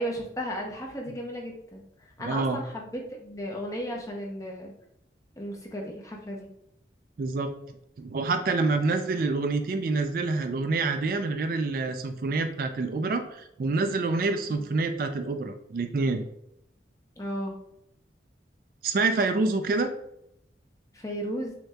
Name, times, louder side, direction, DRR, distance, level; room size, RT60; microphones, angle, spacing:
voice 1, 0.0-4.7 5.4-6.5 14.4-14.7 17.2-17.6 20.9-21.6, equal, 20° left, 0 dB, 0.7 m, -35 dB
voice 2, 2.2-2.6 7.2-7.5 8.0-16.2 18.8-19.9, right 3 dB, 50° right, 7 dB, 0.3 m, -27 dB
6.3 x 2.7 x 2.3 m, 0.79 s
head